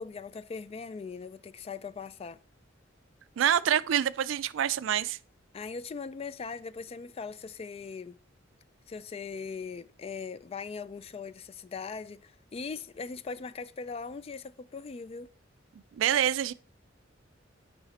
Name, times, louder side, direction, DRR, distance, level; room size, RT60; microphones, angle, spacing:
voice 1, 0.0-2.4 5.5-8.2 8.9-15.3, left 5 dB, 30° left, 0.3 m, -40 dB
voice 2, 3.4-5.2 16.0-16.5, right 10 dB, 75° right, 0.4 m, -26 dB
8.7 x 5.0 x 4.2 m
head